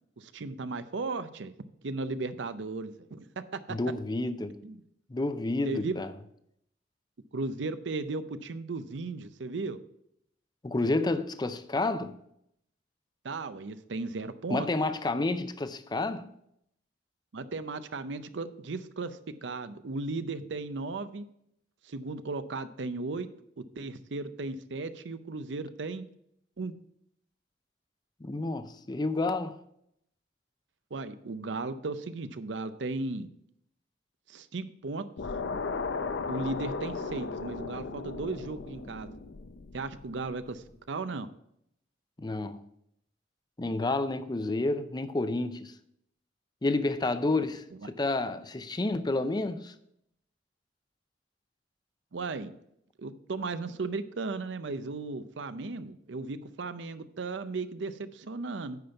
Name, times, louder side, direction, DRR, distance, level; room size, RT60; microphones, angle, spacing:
voice 1, 0.2-1.5 1.8-3.8 4.6-4.8 5.7-5.9 7.3-9.8 13.2-14.7 17.3-21.2 21.9-23.3 23.6-26.1 26.6-26.7 30.9-33.3 34.3-35.0 36.3-39.1 39.7-41.3 47.8-47.9 52.1-52.5 53.0-58.8, right 3 dB, 75° right, 0.6 m, -36 dB
voice 2, 3.7-4.6 5.1-6.1 10.6-12.2 14.5-16.3 28.2-29.6 42.2-42.6 43.6-45.7 46.6-49.7, left 2 dB, 25° left, 0.5 m, -30 dB
sound 1, 35.2-40.4, left 4 dB, 80° left, 0.6 m, -36 dB
9.4 x 5.2 x 5.7 m
head